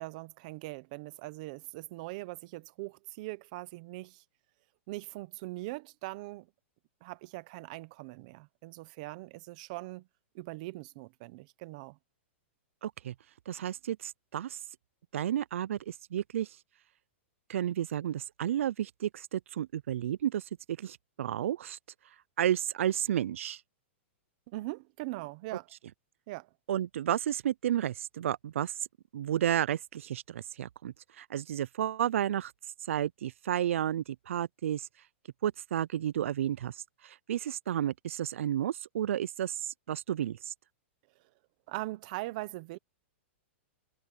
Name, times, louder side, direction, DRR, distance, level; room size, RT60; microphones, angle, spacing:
voice 1, 0.0-4.2 4.9-6.5 7.0-10.1 10.3-12.0 24.5-25.7 26.3-26.5 41.7-42.8, right 20 dB, 35° right, 0.9 m, -41 dB
voice 2, 12.8-13.1 13.5-14.6 15.1-16.5 17.5-20.4 20.8-21.8 22.4-23.6 26.7-28.7 29.1-32.5 32.9-34.9 35.4-36.7 37.0-40.5, right 11 dB, 80° right, 0.4 m, -32 dB
supercardioid pair, 170°, 7 cm